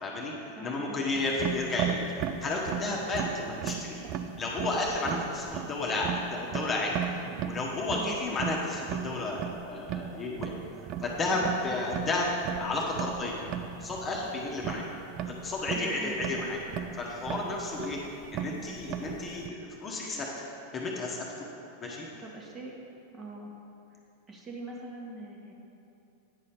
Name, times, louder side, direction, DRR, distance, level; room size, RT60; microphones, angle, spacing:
voice 1, 0.0-2.0 2.4-4.0 4.4-7.0 7.5-10.6 11.0-12.3 12.6-13.4 13.8-14.8 15.2-16.6 17.0-18.0 18.3-20.5 20.7-21.5 21.8-22.1, left 2 dB, 20° left, -2 dB, 1.1 m, -32 dB
voice 2, 0.5-1.2 8.0-8.5 11.3-11.9 15.7-16.2 22.2-22.7 23.1-23.5 23.9-24.0 24.3-25.5, right 2 dB, 20° right, -2 dB, 1.3 m, -43 dB
sound 1, 1.1-19.5, right 8 dB, 35° right, 0.4 m, -37 dB
9.3 x 5.6 x 5.0 m, 2.7 s
figure-of-eight pair, 90°, 0 cm